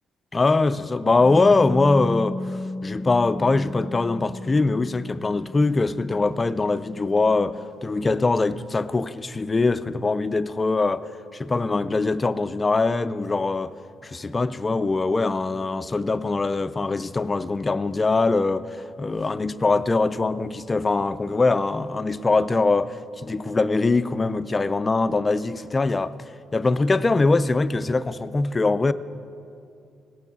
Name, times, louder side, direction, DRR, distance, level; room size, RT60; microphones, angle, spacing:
voice 1, 0.3-13.7 14.0-26.1 26.5-28.9, left 3 dB, 25° left, 0.4 m, -22 dB
Bass guitar, 1.2-7.4, left 1 dB, 70° right, 3.2 m, -34 dB
17.5 x 6.0 x 6.8 m
cardioid pair, 90°, 0 cm